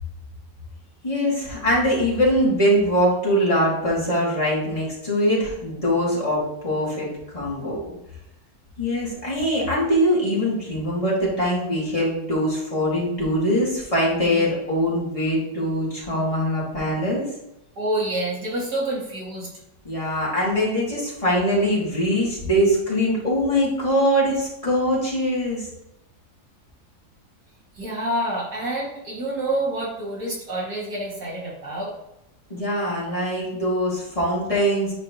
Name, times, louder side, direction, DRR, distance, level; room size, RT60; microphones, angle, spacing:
voice 1, 1.0-7.1 7.3-7.9 8.8-17.3 19.8-25.7 32.5-34.9, equal, 20° left, -7 dB, 2.3 m, -22 dB
voice 2, 17.8-19.5 27.7-31.9, right 1 dB, 65° right, -6 dB, 2.9 m, -27 dB
9.8 x 4.9 x 3.0 m, 0.87 s
omnidirectional pair, 1.9 m